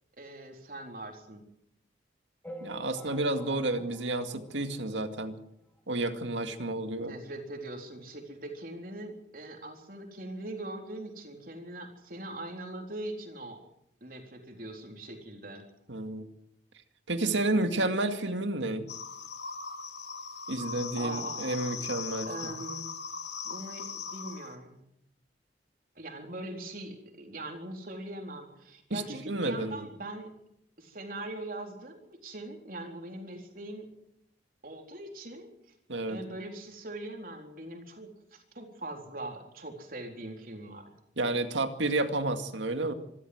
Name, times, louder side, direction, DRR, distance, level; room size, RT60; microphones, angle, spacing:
voice 1, 0.2-1.4 7.0-13.6 14.0-15.6 20.9-21.8 22.2-22.9 23.4-24.9 26.0-30.3 30.8-33.9 34.6-35.5 36.1-40.9, right 1 dB, 50° right, 3 dB, 4.0 m, -41 dB
sound 1, 2.4-5.3 5.8-5.9 6.1-6.2 6.5-6.6 7.5-7.6 8.0-8.1, equal, 10° left, 2.1 m, -48 dB
voice 2, 2.6-5.4 5.9-7.1 15.9-16.2 17.1-18.9 20.5-22.6 28.9-29.9 35.9-36.2 41.2-42.9, right 2 dB, 90° right, 7 dB, 2.2 m, -31 dB
sound 2, 18.9-24.5, left 5 dB, 70° left, 2.6 m, -39 dB
26.0 x 13.5 x 8.0 m, 0.77 s
head